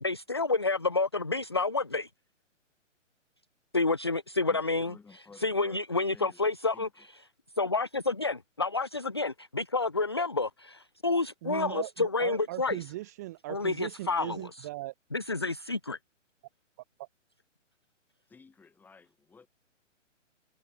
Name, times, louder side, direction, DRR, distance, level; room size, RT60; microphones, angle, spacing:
voice 1, 0.0-2.1 3.7-5.0 5.4-6.9 7.6-12.8 13.5-14.4 15.1-16.0, left 3 dB, 20° left, 0.4 m, -29 dB
voice 2, 4.4-6.4 6.7-6.9 18.3-19.5, left 4 dB, 5° left, 4.0 m, -54 dB
voice 3, 11.4-14.9 17.0-17.1, right 18 dB, 15° right, 0.8 m, -39 dB
hypercardioid pair, 165°, 38 cm